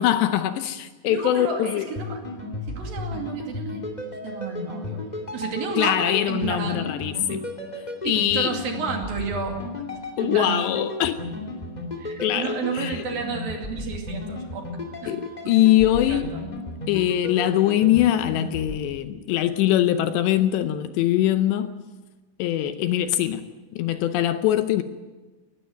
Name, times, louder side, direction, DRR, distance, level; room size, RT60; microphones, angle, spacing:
voice 1, 0.0-1.8 5.8-7.4 8.0-8.5 10.2-11.2 12.2-13.0 15.1-16.3 16.9-21.7 22.4-23.4 23.8-24.8, left 12 dB, 80° left, 2.8 m, -22 dB
voice 2, 1.1-2.2 2.7-3.9 4.2-5.0 5.3-6.9 8.0-9.8 10.2-10.7 12.0-14.7 15.0-15.1 15.4-15.6 16.0-16.4, right 5 dB, 55° right, 3.9 m, -31 dB
sound 1, 1.9-18.8, left 2 dB, 20° left, 1.1 m, -34 dB
19.5 x 16.0 x 9.1 m
omnidirectional pair, 5.3 m